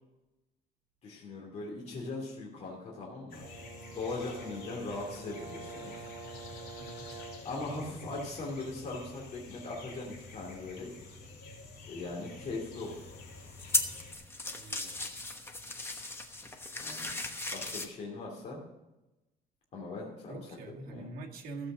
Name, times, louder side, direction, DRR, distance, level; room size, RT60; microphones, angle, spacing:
voice 1, 1.0-3.4 3.9-5.9 7.4-10.9 11.8-12.9 16.8-17.1 17.5-18.6 19.7-20.4 20.8-21.1, left 3 dB, 40° left, -3 dB, 2.8 m, -40 dB
sound 1, 3.3-14.1, left 3 dB, 60° left, 3.4 m, -49 dB
Brass instrument, 3.4-7.6, right 5 dB, 45° right, 2.2 m, -47 dB
voice 2, 6.7-7.2 14.4-15.1 20.3-21.7, right 3 dB, 60° right, 0 dB, 2.2 m, -45 dB
sound 2, 12.8-17.9, left 2 dB, 15° left, 1.1 m, -36 dB
15.0 x 7.7 x 6.2 m, 1.0 s
cardioid pair, 170°, 17 cm